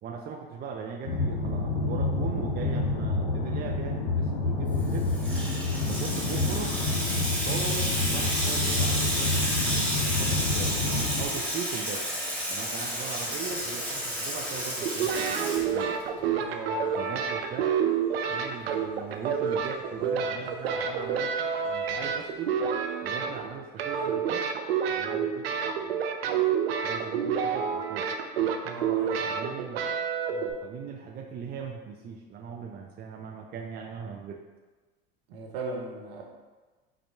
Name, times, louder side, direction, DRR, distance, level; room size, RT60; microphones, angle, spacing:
voice 1, 0.0-5.1 5.9-6.7 7.4-9.5 10.0-12.0 12.5-16.0 16.9-17.8 18.3-22.5 23.0-24.5 24.8-26.4 26.8-28.1 29.2-29.8 30.3-34.4, right 6 dB, 30° right, 2 dB, 0.5 m, -39 dB
sound 1, 1.1-11.2, left 2 dB, 85° left, 0.8 m, -28 dB
Water tap faucet / Sink (filling or washing), 4.8-16.2, equal, 5° left, 1.4 m, -31 dB
sound 2, 14.8-23.5 23.8-30.5, right 7 dB, 80° right, 0.5 m, -28 dB
voice 2, 16.4-16.9 28.6-29.4 35.3-36.2, right 3 dB, 65° right, -1 dB, 1.1 m, -37 dB
5.8 x 2.6 x 3.3 m, 1.3 s
hypercardioid pair, 75°, 30 cm